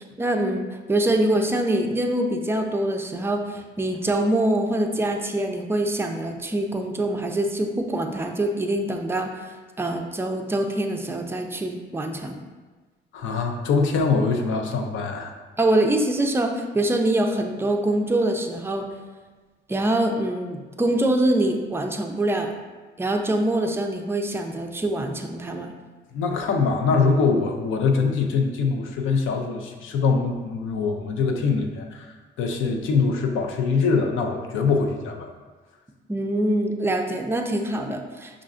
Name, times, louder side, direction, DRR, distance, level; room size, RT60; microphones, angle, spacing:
voice 1, 0.0-12.4 15.6-18.9 19.7-22.5 23.0-25.7 36.1-38.4, right 1 dB, 10° right, 3 dB, 0.4 m, -24 dB
voice 2, 13.1-15.3 26.1-35.3, left 4 dB, 85° left, 4 dB, 0.5 m, -23 dB
5.2 x 2.4 x 2.4 m, 1.3 s
cardioid pair, 90°, 20 cm